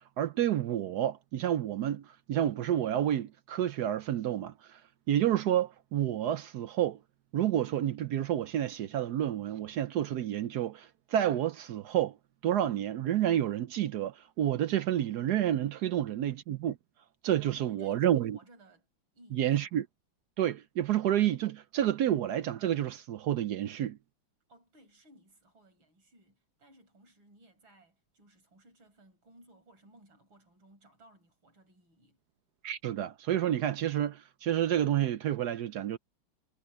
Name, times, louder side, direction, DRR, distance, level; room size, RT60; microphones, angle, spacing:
voice 1, 0.2-4.8 5.1-7.0 7.3-12.2 12.4-16.8 17.2-18.4 19.3-19.9 20.4-24.0 32.6-36.0, right 11 dB, 70° right, 1.0 m, -29 dB
voice 2, 17.5-18.9 19.1-19.8 24.5-32.2, right 1 dB, 90° right, 6.0 m, -60 dB
omnidirectional pair, 2.1 m